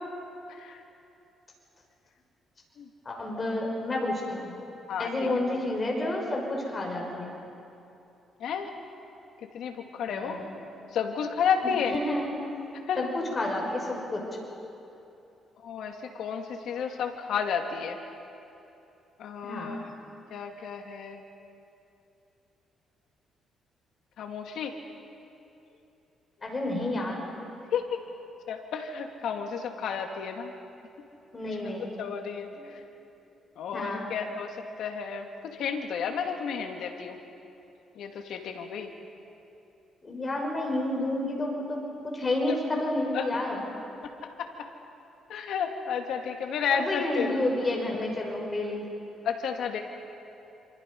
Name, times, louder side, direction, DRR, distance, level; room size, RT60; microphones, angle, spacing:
voice 1, 0.5-0.8 2.8-2.9 4.9-5.3 8.4-8.7 9.5-10.4 10.9-11.9 12.9-13.1 15.6-18.0 19.2-19.8 20.3-21.2 24.2-24.7 27.7-28.0 28.5-30.5 32.0-32.5 33.6-37.2 38.0-38.9 42.5-42.6 43.1-43.2 44.2-44.5 45.3-47.3 49.2-49.8, left 7 dB, 75° left, 3 dB, 2.6 m, -31 dB
voice 2, 3.0-4.5 5.0-7.4 10.1-10.5 11.6-12.3 13.0-14.2 19.4-19.8 26.4-27.2 31.3-31.9 32.5-32.7 33.7-34.1 40.0-43.6 46.7-48.8, left 1 dB, 30° left, 0 dB, 6.2 m, -30 dB
28.5 x 26.5 x 5.6 m, 2.9 s
cardioid pair, 90°, 0 cm